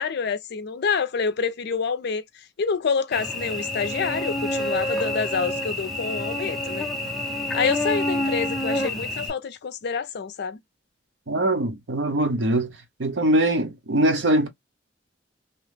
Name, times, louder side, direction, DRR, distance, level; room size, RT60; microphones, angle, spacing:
voice 1, 0.0-2.2 2.6-6.9 7.5-10.6, left 5 dB, 60° left, 0.4 m, -27 dB
Cricket / Buzz, 3.1-9.3, left 1 dB, ahead, 0.6 m, -28 dB
voice 2, 11.3-12.7 13.0-14.5, right 1 dB, 70° right, 0.8 m, -22 dB
2.8 x 2.0 x 3.1 m
head